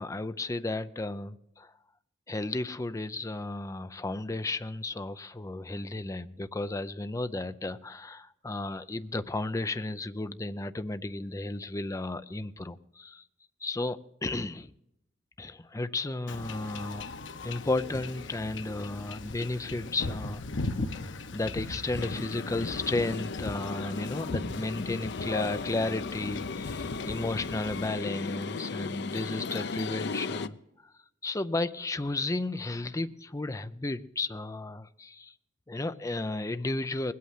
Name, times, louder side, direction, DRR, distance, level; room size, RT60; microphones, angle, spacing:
voice 1, 0.0-1.7 2.3-13.2 13.6-14.7 15.4-17.1 17.4-20.9 21.3-30.6 30.8-30.9 31.2-35.3 35.7-37.1, left 2 dB, 20° left, 12 dB, 0.5 m, -33 dB
Wind / Ocean / Boat Water vehicle, 16.3-27.9, left 2 dB, 90° left, 0.9 m, -39 dB
sound 1, 18.6-18.9 19.4-19.7 20.1-20.3 20.7-21.0 21.4-21.6 22.1-22.4 22.8-23.0 23.5-23.7 24.3-24.5 25.0-25.2 25.7-25.9 26.2-26.5 27.1-27.2 27.8-27.9, right 1 dB, 25° right, 1.1 m, -52 dB
sound 2, 21.9-30.5, left 4 dB, 65° left, 0.6 m, -36 dB
20.0 x 8.5 x 7.5 m, 0.83 s
head